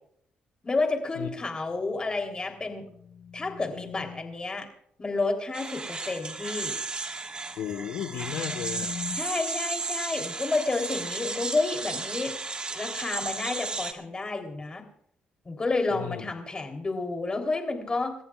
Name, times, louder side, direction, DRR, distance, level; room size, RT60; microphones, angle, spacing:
voice 1, 0.6-2.9 3.3-4.7 5.0-6.8 9.2-12.3 12.7-14.8 15.5-18.2, left 3 dB, 30° left, 4 dB, 3.5 m, -30 dB
sound 1, 2.3-4.5 7.5-9.1, left 7 dB, 65° left, 5.0 m, -43 dB
sound 2, 5.5-13.9, right 3 dB, 30° right, 1.7 m, -34 dB
voice 2, 7.6-9.0 15.9-16.3, left 9 dB, 85° left, 7 dB, 1.4 m, -34 dB
29.5 x 14.0 x 2.5 m, 0.67 s
cardioid pair, 80°, 3 cm